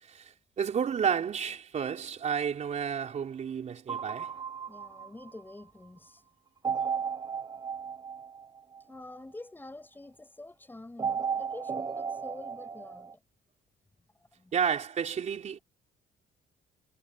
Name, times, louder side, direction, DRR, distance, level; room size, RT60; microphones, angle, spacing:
voice 1, 0.0-4.4 14.5-15.6, right 7 dB, 45° right, 4.2 m, -31 dB
sound 1, 3.9-5.6 6.6-9.2 11.0-13.1, right 6 dB, 25° right, 0.8 m, -35 dB
voice 2, 4.7-6.2 8.9-13.2 14.4-14.5, left 2 dB, 10° left, 6.2 m, -47 dB
cardioid pair, 110°, 17 cm